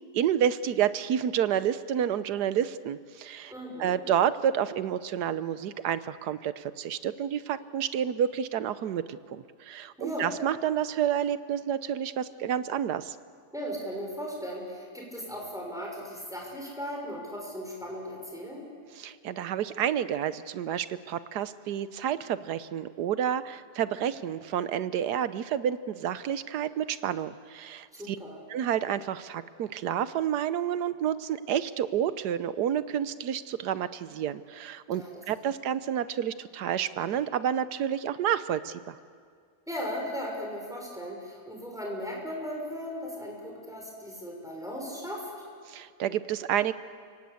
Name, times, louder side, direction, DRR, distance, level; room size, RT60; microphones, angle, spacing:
voice 1, 0.1-3.5 3.8-13.2 19.0-28.2 28.5-39.0 45.7-46.7, right 9 dB, 85° right, 14 dB, 1.4 m, -29 dB
voice 2, 3.5-4.0 10.0-10.4 13.5-18.7 27.9-28.4 34.9-35.2 39.7-45.3, equal, ahead, -1 dB, 6.2 m, -37 dB
30.0 x 18.0 x 8.3 m, 2.1 s
omnidirectional pair, 1.7 m